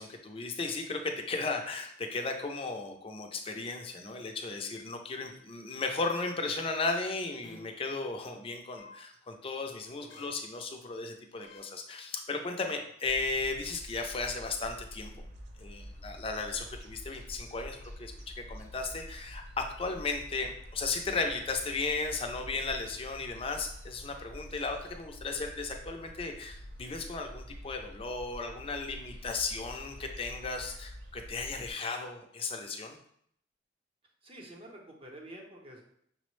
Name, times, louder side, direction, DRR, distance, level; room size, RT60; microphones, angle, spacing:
voice 1, 0.0-15.1 15.6-18.1 18.5-33.0, left 3 dB, 30° left, 4 dB, 0.5 m, -35 dB
sound 1, 2.1-2.3 3.4-3.6 4.8-4.9 6.1-6.2 7.4-7.6 8.8-8.9 10.1-10.3 11.4-11.6, left 4 dB, 75° left, 0.8 m, -52 dB
sound 2, 13.0-31.7, equal, 75° right, 0.5 m, -47 dB
voice 2, 34.2-35.8, right 1 dB, 30° right, 0 dB, 0.7 m, -48 dB
5.8 x 2.0 x 3.1 m, 0.68 s
head